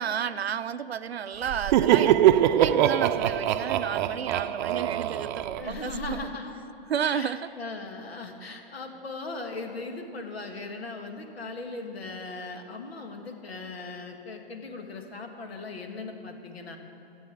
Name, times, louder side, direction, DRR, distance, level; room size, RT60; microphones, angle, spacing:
voice 1, 0.0-6.2 6.9-7.5, right 8 dB, 90° right, 13 dB, 0.6 m, -32 dB
Laughter, 1.5-6.2, right 11 dB, 50° right, 0.6 m, -23 dB
voice 2, 5.6-6.6 7.0-16.8, left 3 dB, 80° left, 4 dB, 2.0 m, -38 dB
14.0 x 8.2 x 8.5 m, 2.8 s
hypercardioid pair, 120°, 30 cm